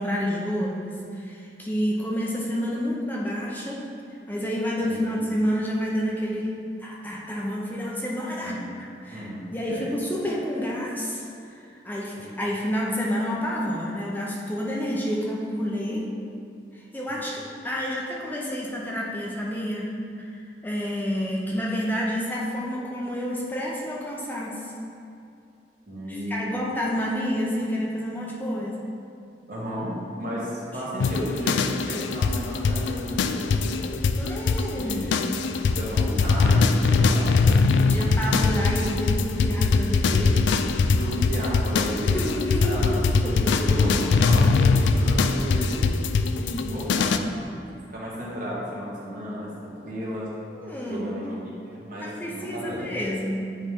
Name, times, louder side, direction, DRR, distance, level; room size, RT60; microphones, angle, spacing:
voice 1, 0.0-3.9 4.3-16.1 16.7-24.7 26.1-28.8 34.2-35.2 37.7-40.4 42.0-43.7 44.4-44.6 46.3-46.8 50.5-51.1 52.0-53.6, equal, 10° left, -4 dB, 0.6 m, -29 dB
voice 2, 4.8-5.1 8.4-8.6 9.0-9.9 12.2-12.3 17.1-17.2 25.9-26.5 29.5-33.9 34.7-35.2 35.7-37.5 37.8-38.1 41.0-46.0 46.7-47.2 47.9-50.3 50.8-51.4 51.6-53.0, equal, 55° right, -6 dB, 1.5 m, -33 dB
sound 1, 31.0-47.2, left 4 dB, 85° left, 0.3 m, -22 dB
9.1 x 3.2 x 3.6 m, 2.6 s
head